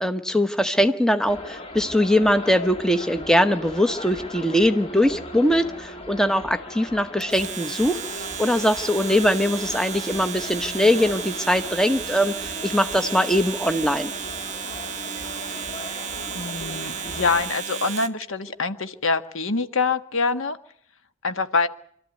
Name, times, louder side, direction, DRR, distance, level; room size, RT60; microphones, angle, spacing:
voice 1, 0.0-8.0 8.4-14.1, equal, 5° left, 9 dB, 0.9 m, -21 dB
sound 1, 1.3-17.5, left 1 dB, 30° left, 2.4 m, -38 dB
Domestic sounds home sounds, 7.2-18.2, right 8 dB, 35° right, 1.3 m, -34 dB
voice 2, 16.3-20.6 21.2-21.7, left 4 dB, 70° left, 10 dB, 1.5 m, -25 dB
26.0 x 13.5 x 9.3 m, 0.68 s
head